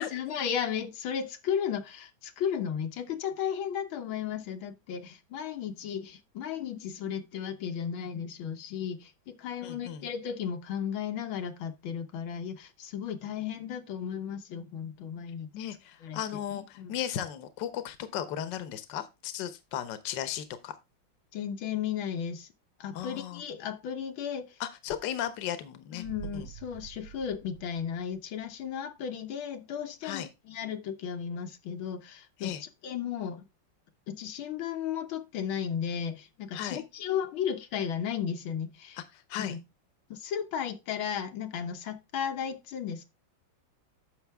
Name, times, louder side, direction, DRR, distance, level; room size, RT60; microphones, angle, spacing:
voice 1, 0.0-15.5 16.0-16.9 21.3-22.5 22.8-24.6 25.9-33.4 34.1-39.0 39.4-39.6 40.1-43.1, left 8 dB, 85° left, 1.8 m, -35 dB
voice 2, 9.6-10.1 15.5-20.7 22.9-23.4 24.6-26.0 26.3-26.5 30.0-30.3 32.4-32.6 36.5-36.8 39.3-39.6, left 10 dB, 65° left, 1.5 m, -36 dB
sound 1, 26.0-28.7 29.0-29.1, right 10 dB, 70° right, 1.2 m, -47 dB
10.5 x 6.8 x 3.5 m
omnidirectional pair, 2.2 m